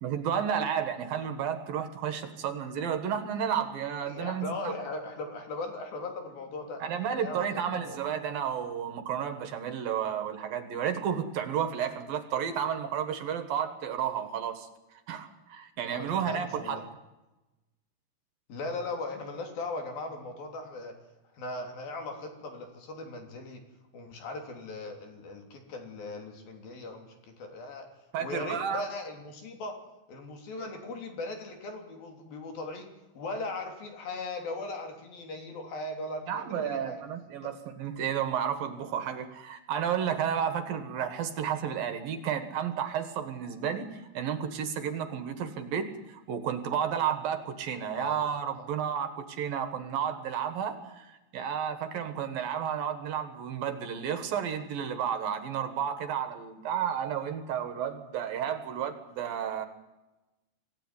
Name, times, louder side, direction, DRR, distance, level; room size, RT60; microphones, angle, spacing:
voice 1, 0.0-4.7 6.8-14.7 15.1-16.8 28.1-28.8 36.3-59.7, right 8 dB, 65° right, 9 dB, 3.1 m, -32 dB
voice 2, 4.1-6.8 7.1-7.5 7.7-8.0 15.8-16.8 18.5-21.0 21.3-23.6 23.9-27.9 28.2-29.7 30.1-32.9 33.1-37.0 37.4-37.5 47.9-48.2 48.6-48.7, left 2 dB, 60° left, 4 dB, 4.9 m, -38 dB
26.0 x 16.5 x 9.8 m, 1.0 s
omnidirectional pair, 4.7 m